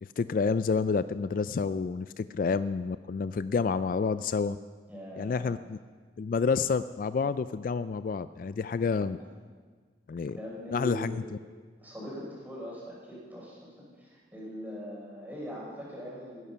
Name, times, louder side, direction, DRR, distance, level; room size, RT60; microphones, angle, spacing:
voice 1, 0.0-4.6 5.2-5.8 6.2-9.2 10.1-10.4 10.7-11.2, left 5 dB, 50° left, 14 dB, 0.3 m, -29 dB
voice 2, 4.9-5.5 10.4-11.2 11.8-16.5, left 1 dB, 10° right, -5 dB, 5.4 m, -41 dB
17.5 x 11.0 x 5.6 m, 1.5 s
head